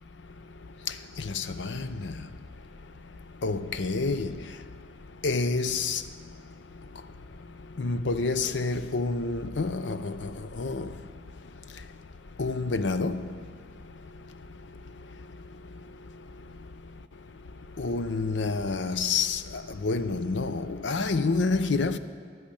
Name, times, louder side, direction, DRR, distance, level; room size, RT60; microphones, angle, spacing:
voice 1, 1.4-1.7 3.4-4.3 5.2-6.0 7.8-10.1 10.6-10.9 12.4-13.2 17.8-19.4 19.8-22.0, left 3 dB, 80° left, 0.6 m, -28 dB
11.5 x 11.0 x 8.8 m
head